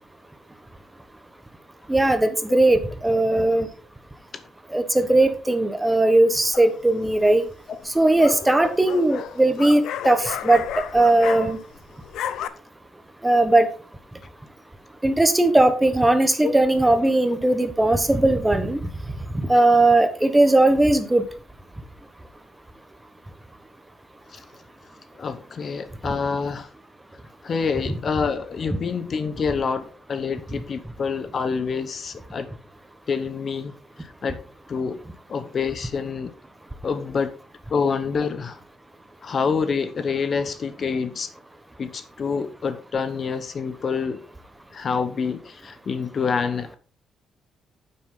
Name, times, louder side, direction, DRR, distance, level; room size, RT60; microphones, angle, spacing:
voice 1, 1.9-3.7 4.7-7.4 7.9-10.6 10.9-11.6 13.2-13.7 15.0-18.8 19.3-21.2, right 2 dB, 10° right, 10 dB, 1.2 m, -18 dB
sound 1, 6.5-7.0 7.9-11.8 12.0-12.5, left 10 dB, 80° left, 0.8 m, -32 dB
voice 2, 25.1-26.7 27.4-32.5 33.1-34.4 34.7-35.0 35.3-36.3 36.8-37.4 37.7-38.6 39.2-41.3 41.8-44.2 44.7-46.8, left 5 dB, 45° left, 11 dB, 1.0 m, -27 dB
9.5 x 7.7 x 3.8 m, 0.37 s
cardioid pair, 115°, 0 cm